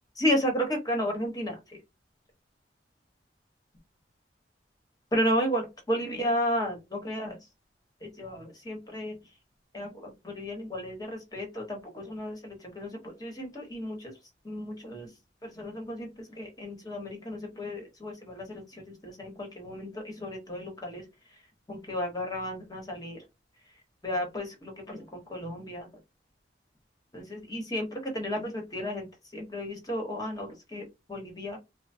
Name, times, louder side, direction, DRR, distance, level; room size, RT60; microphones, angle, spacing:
voice 1, 0.2-1.5 5.1-7.3 8.2-9.2 9.7-14.1 14.4-15.1 15.6-16.1 16.4-18.6 19.0-19.9 20.2-21.0 21.7-23.2 24.0-25.0 25.3-25.9 27.1-29.1 29.3-31.6, equal, 20° left, 1 dB, 0.9 m, -32 dB
3.1 x 2.0 x 2.6 m, 0.23 s
head